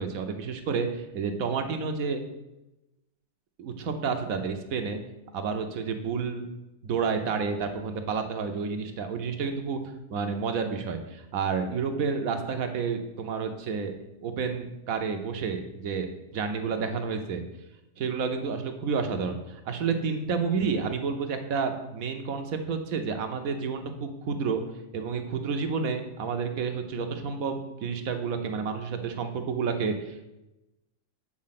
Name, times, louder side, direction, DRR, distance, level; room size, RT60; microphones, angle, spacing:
voice 1, 0.0-2.2 3.6-5.0 5.3-6.5 6.8-13.9 14.2-16.1 16.3-17.4 18.0-24.6 24.9-30.3, right 5 dB, 70° right, 6 dB, 1.1 m, -30 dB
7.6 x 4.1 x 5.8 m, 0.96 s
omnidirectional pair, 1.6 m